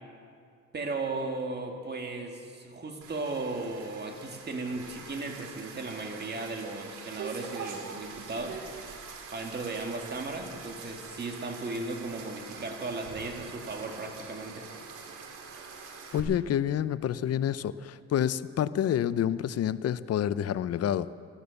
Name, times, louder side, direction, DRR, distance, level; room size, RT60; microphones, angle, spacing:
voice 1, 0.7-8.6 9.3-14.7, right 3 dB, 35° right, 3 dB, 2.2 m, -36 dB
sound 1, 3.0-16.2, right 5 dB, 85° right, 2.1 m, -44 dB
voice 2, 16.1-21.1, left 10 dB, 55° left, 16 dB, 0.6 m, -28 dB
14.0 x 14.0 x 6.7 m, 2.3 s
cardioid pair, 90°, 30 cm